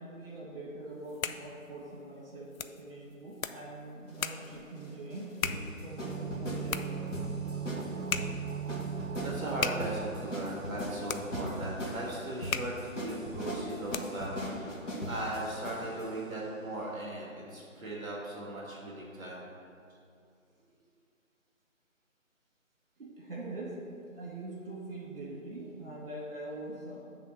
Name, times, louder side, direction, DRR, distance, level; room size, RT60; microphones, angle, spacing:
voice 1, 0.0-7.2 20.7-20.8 23.0-27.0, right 2 dB, 40° right, -4 dB, 1.6 m, -43 dB
sound 1, 0.9-14.4, left 6 dB, 75° left, 0.5 m, -40 dB
sound 2, 4.1-16.1, equal, 60° left, 1.6 m, -39 dB
sound 3, 5.8-11.5 11.8-11.9, right 7 dB, 70° right, 0.5 m, -39 dB
voice 2, 9.2-14.7 15.0-19.5, right 1 dB, 15° right, -5 dB, 1.4 m, -38 dB
8.1 x 3.4 x 6.6 m, 2.4 s
figure-of-eight pair, 155°, 41 cm